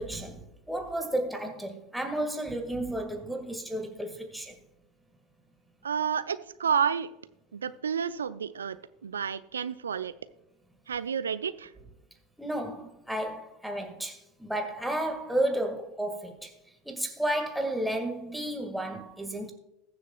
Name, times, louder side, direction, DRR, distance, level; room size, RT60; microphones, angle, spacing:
voice 1, 0.0-4.6 12.4-16.5 16.9-19.5, right 1 dB, ahead, 1.8 m, -32 dB
voice 2, 5.8-7.1 7.5-8.8 9.0-10.1 10.9-11.7, right 7 dB, 75° right, 0.4 m, -30 dB
20.5 x 7.1 x 2.3 m
figure-of-eight pair, 80°, 0 cm